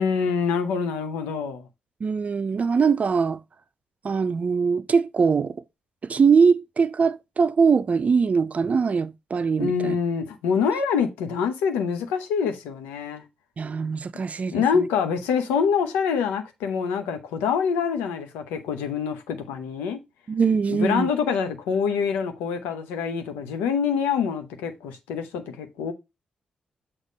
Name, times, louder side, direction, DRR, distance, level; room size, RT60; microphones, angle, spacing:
voice 1, 0.0-1.6 9.6-13.2 14.5-20.0 20.7-25.9, left 6 dB, 85° left, 0.8 m, -25 dB
voice 2, 2.0-3.4 4.0-5.6 6.0-10.0 13.6-14.9 20.3-21.1, right 5 dB, 45° right, 0.4 m, -22 dB
6.5 x 3.0 x 5.1 m
hypercardioid pair, 40°, 3 cm